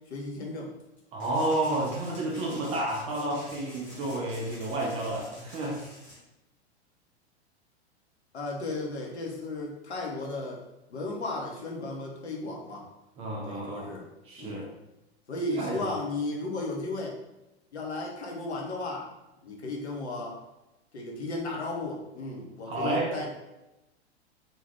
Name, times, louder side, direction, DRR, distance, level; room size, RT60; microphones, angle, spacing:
voice 1, 0.1-0.7 8.3-10.6 10.9-12.9 13.4-14.1 14.4-14.7 15.3-17.2 17.7-19.1 19.4-20.4 20.9-23.3, left 2 dB, 75° left, -1 dB, 0.8 m, -35 dB
voice 2, 1.1-5.8 13.2-14.0 14.3-14.7 15.5-15.9 22.7-23.1, right 2 dB, 20° right, -2 dB, 0.3 m, -31 dB
sound 1, 1.2-6.2, left 1 dB, 25° left, 1.1 m, -48 dB
2.6 x 2.2 x 3.4 m, 0.96 s
figure-of-eight pair, 95°, 33 cm